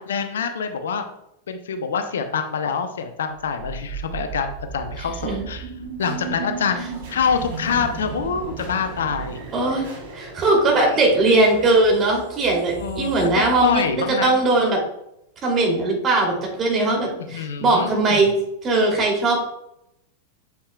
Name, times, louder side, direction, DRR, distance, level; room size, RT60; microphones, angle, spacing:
voice 1, 0.1-1.0 1.5-5.7 6.0-6.8 7.1-9.4 12.8-14.3 17.3-18.2, left 6 dB, 65° left, 8 dB, 0.7 m, -26 dB
sound 1, 3.3-14.3, right 5 dB, 50° right, 2.8 m, -35 dB
voice 2, 9.5-9.9 10.1-13.8 14.2-14.8 15.4-18.3 18.6-19.4, right 2 dB, 25° right, -1 dB, 2.8 m, -19 dB
8.5 x 7.5 x 2.3 m, 0.80 s
figure-of-eight pair, 90°, 0 cm